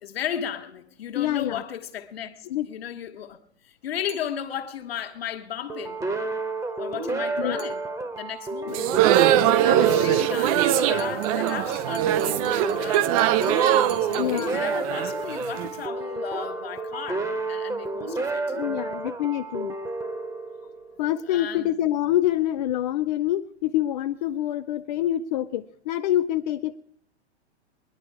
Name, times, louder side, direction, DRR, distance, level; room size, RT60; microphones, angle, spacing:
voice 1, 0.0-6.0 6.8-8.9 9.4-13.5 14.0-18.6 21.3-21.8, left 9 dB, 60° left, 1.5 m, -35 dB
voice 2, 1.2-1.6 2.5-2.7 7.4-7.7 8.7-8.8 14.2-14.6 18.5-19.7 21.0-26.8, left 12 dB, 40° left, 0.5 m, -26 dB
sound 1, 4.1-4.9 7.6-8.3 10.5-15.1, right 6 dB, 50° right, 1.9 m, -48 dB
sound 2, 5.7-21.1, right 3 dB, 10° right, 1.1 m, -31 dB
sound 3, 8.7-15.7, right 11 dB, 35° right, 0.5 m, -22 dB
20.0 x 11.0 x 4.6 m
figure-of-eight pair, 105°, 33 cm